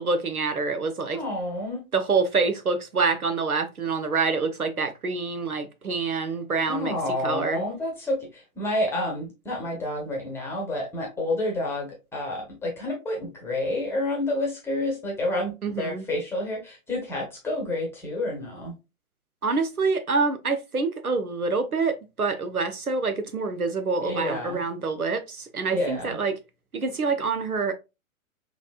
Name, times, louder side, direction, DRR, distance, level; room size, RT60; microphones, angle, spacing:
voice 1, 0.0-1.2 1.9-6.9 7.2-7.6 15.6-16.1 19.4-26.3 26.7-27.7, right 4 dB, 90° right, 0.8 m, -26 dB
voice 2, 1.1-1.8 6.7-18.7 24.0-24.6 25.7-26.2, left 1 dB, 5° left, 1.0 m, -29 dB
4.0 x 3.0 x 2.3 m
figure-of-eight pair, 115°, 42 cm